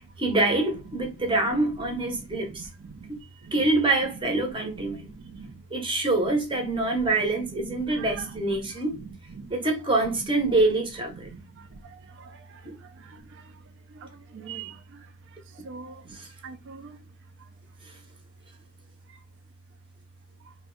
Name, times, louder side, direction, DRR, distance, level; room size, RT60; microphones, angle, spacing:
voice 1, 0.2-2.6 3.1-3.2 3.5-5.0 5.7-8.9 9.5-11.3 12.6-12.7, right 2 dB, 25° right, 0.7 m, -25 dB
voice 2, 0.8-3.7 4.0-5.7 6.2-9.5 10.0-10.7 11.1-17.1 17.4-17.5 19.1-19.2 20.4-20.5, right 5 dB, 60° right, 0.4 m, -44 dB
2.6 x 2.1 x 3.7 m
head